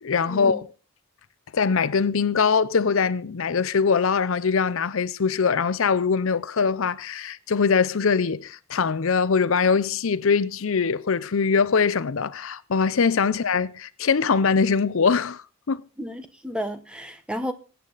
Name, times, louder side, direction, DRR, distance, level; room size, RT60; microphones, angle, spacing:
voice 1, 0.0-0.7 1.5-15.8, left 5 dB, 65° left, 0.6 m, -22 dB
voice 2, 16.0-17.5, equal, 5° right, 1.0 m, -32 dB
22.5 x 9.1 x 4.0 m
head